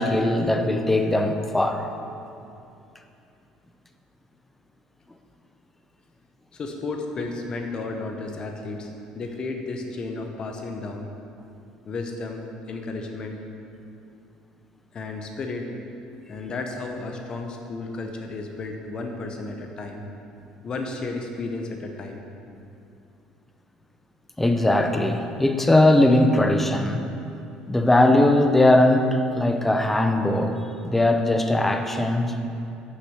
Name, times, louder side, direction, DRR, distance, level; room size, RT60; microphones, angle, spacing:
voice 1, 0.0-1.9 24.4-27.0 27.7-32.3, left 1 dB, 10° left, 6 dB, 0.6 m, -20 dB
voice 2, 6.5-11.1 11.9-13.4 14.9-15.7 16.2-20.1 20.6-22.2, left 3 dB, 40° left, 3 dB, 0.9 m, -33 dB
6.4 x 6.1 x 6.6 m, 2.7 s
cardioid pair, 105°, 2 cm